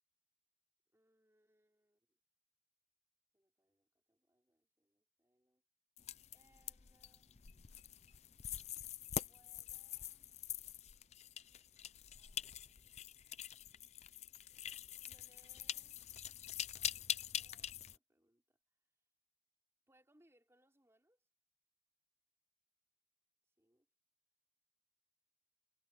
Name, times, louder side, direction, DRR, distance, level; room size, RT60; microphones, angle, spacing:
voice 1, 0.9-2.2 3.3-5.6 6.3-7.4 9.2-10.4 12.1-13.2 15.0-16.0 16.7-18.6 19.9-21.3 23.6-23.9, right 1 dB, 15° right, 4.0 m, -75 dB
sound 1, 6.0-18.0, left 10 dB, 40° left, 0.5 m, -45 dB
head